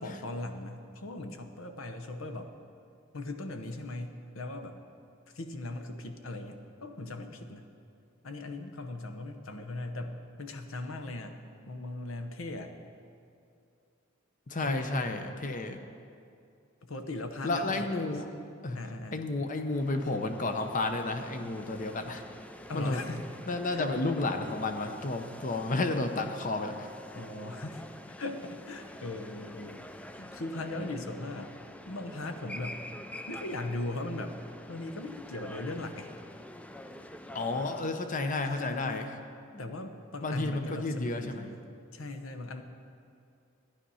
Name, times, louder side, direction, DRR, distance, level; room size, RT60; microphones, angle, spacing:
voice 1, 0.0-2.5 3.1-4.8 5.3-7.7 8.2-12.7 14.6-15.2 16.8-18.0 18.7-19.2 22.7-23.3 23.7-23.9 27.1-27.8 28.2-29.9 30.1-31.5 31.9-32.8 33.3-34.3 34.7-36.1 38.4-39.1 39.6-41.6 41.9-42.6, left 2 dB, 80° left, 7 dB, 0.9 m, -39 dB
voice 2, 14.5-15.8 17.4-18.2 18.6-18.8 19.1-22.2 22.7-23.1 23.5-26.9 37.3-39.1 39.5-39.6 40.2-41.4, left 2 dB, 40° left, 7 dB, 0.8 m, -31 dB
sound 1, 19.7-37.8, left 1 dB, 5° left, 0.3 m, -47 dB
12.0 x 10.0 x 5.6 m, 2.5 s
head